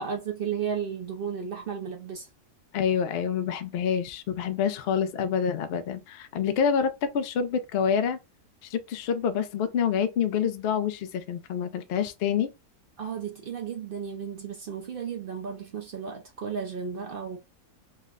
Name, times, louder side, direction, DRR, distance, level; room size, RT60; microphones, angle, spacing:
voice 1, 0.0-2.3 13.0-17.4, right 7 dB, 70° right, 0.5 m, -34 dB
voice 2, 2.7-8.2 8.6-12.5, left 7 dB, 75° left, 0.5 m, -27 dB
3.3 x 2.1 x 3.6 m
omnidirectional pair, 1.6 m